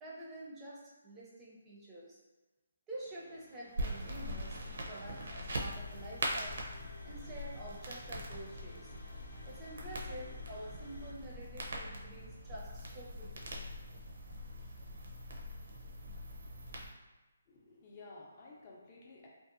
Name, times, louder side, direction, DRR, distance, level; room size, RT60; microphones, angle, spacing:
voice 1, 0.0-2.2 2.9-6.6 7.0-8.9 9.4-13.5, right 1 dB, 15° right, -6 dB, 0.5 m, -48 dB
sound 1, 2.9-11.1, left 4 dB, 85° left, 0.6 m, -54 dB
sound 2, 3.8-16.9, equal, 65° right, 0.5 m, -42 dB
voice 2, 17.5-19.3, left 3 dB, 35° left, -3 dB, 0.5 m, -53 dB
2.6 x 2.3 x 2.5 m, 1.2 s
figure-of-eight pair, 150°, 0 cm